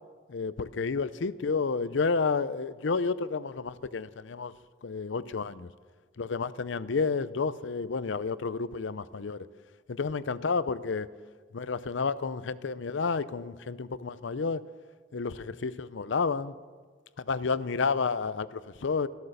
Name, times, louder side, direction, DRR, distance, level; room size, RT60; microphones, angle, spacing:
voice 1, 0.3-4.5 4.8-5.7 6.2-9.5 9.9-11.1 11.5-14.6 15.1-16.5 17.3-19.1, left 4 dB, 70° left, 0.6 m, -30 dB
14.0 x 13.5 x 6.6 m
head